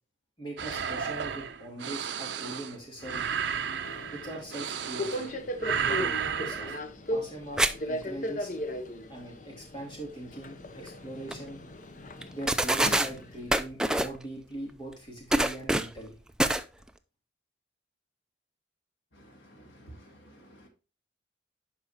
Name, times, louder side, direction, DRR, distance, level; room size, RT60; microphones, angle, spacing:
voice 1, 0.4-3.3 4.1-5.3 5.8-6.8 7.1-8.5 9.1-11.6 12.3-16.2, right 1 dB, 25° left, -1 dB, 2.6 m, -41 dB
sound 1, 0.6-5.3 5.6-6.8, right 7 dB, 70° right, 0.6 m, -33 dB
Subway metro underground, 3.8-13.6, left 1 dB, 40° left, 0.7 m, -37 dB
sound 2, 7.6-7.7 8.0-8.1 10.9-11.0 11.3-11.4 12.2-12.3 12.5-13.1 13.5-14.2 15.3-16.0 16.4-16.6, right 1 dB, 5° right, 0.3 m, -25 dB
voice 2, 19.1-20.7, right 1 dB, 90° left, 3 dB, 1.8 m, -52 dB
11.5 x 4.6 x 2.8 m, 0.32 s
head